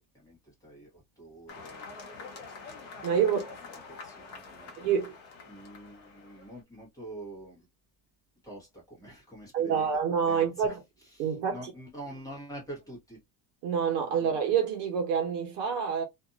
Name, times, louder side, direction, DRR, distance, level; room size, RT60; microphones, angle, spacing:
voice 1, 0.1-2.0 3.9-4.9 5.5-7.7 8.4-10.0 10.3-10.8 11.0-13.2 14.2-14.3, right 1 dB, 10° left, 1.2 m, -46 dB
sound 1, 1.5-6.6, left 4 dB, 35° left, 0.8 m, -46 dB
voice 2, 3.0-3.5 4.8-5.1 9.5-10.8 11.2-11.7 13.6-16.0, right 7 dB, 65° right, 1.1 m, -27 dB
2.7 x 2.5 x 2.4 m
cardioid pair, 175°, 45 cm